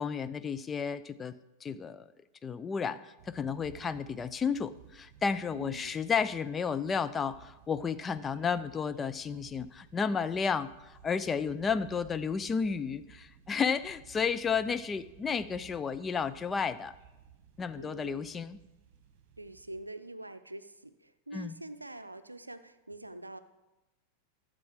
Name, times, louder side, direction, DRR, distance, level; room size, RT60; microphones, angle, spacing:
voice 1, 0.0-2.1 2.4-17.0 17.6-18.6 21.3-21.6, left 6 dB, 20° left, 12 dB, 0.4 m, -32 dB
sound 1, 3.2-19.8, right 8 dB, 45° right, 1.4 m, -57 dB
voice 2, 5.5-6.0 17.8-18.3 19.4-23.4, right 2 dB, 85° right, 11 dB, 0.5 m, -45 dB
12.5 x 7.5 x 4.8 m, 1.0 s
figure-of-eight pair, 90°, 0 cm